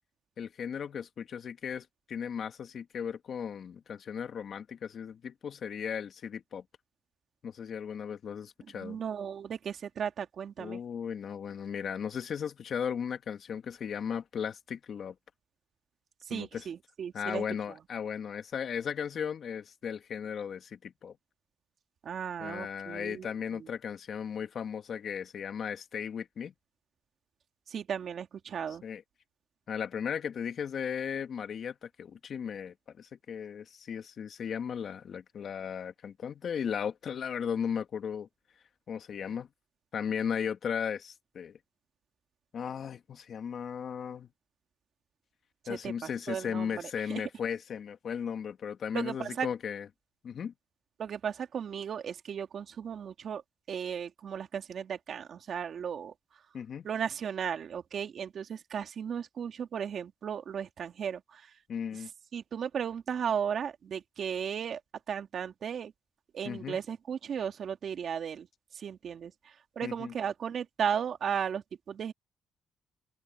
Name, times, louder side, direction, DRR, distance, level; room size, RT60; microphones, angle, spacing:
voice 1, 0.4-6.6 7.4-9.0 10.6-15.1 16.3-16.7 17.1-21.1 22.4-26.5 28.8-29.0 29.7-38.3 38.9-39.5 39.9-41.6 42.5-44.3 45.7-49.9 50.2-50.5 56.5-56.9 61.7-62.1 66.4-66.8 69.8-70.1, left 7 dB, 55° left, 2.2 m, -36 dB
voice 2, 8.7-10.8 16.3-17.4 22.0-23.7 27.7-28.8 45.7-47.2 48.9-49.5 51.0-53.4 53.7-56.1 56.8-61.5 62.3-64.8 65.1-65.9 66.3-68.5 68.7-72.1, right 8 dB, 60° right, 2.6 m, -35 dB
open air
cardioid pair, 90°, 0 cm